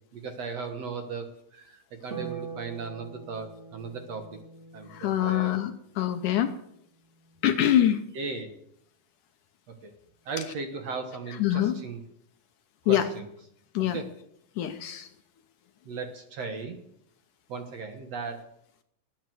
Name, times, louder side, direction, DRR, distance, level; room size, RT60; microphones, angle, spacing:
voice 1, 0.1-4.3 4.7-5.6 8.1-8.5 9.7-9.9 10.3-12.0 12.8-13.3 13.9-14.1 15.9-16.8 17.5-18.5, right 4 dB, 55° right, 6 dB, 2.1 m, -37 dB
Harp, 2.1-8.6 10.2-11.2, right 5 dB, 20° right, 2.7 m, -45 dB
voice 2, 4.9-6.5 7.4-8.0 11.4-11.8 12.9-13.1 13.7-14.0 14.6-15.1, left 11 dB, 70° left, 8 dB, 2.1 m, -24 dB
19.0 x 9.4 x 7.9 m, 0.75 s
omnidirectional pair, 4.2 m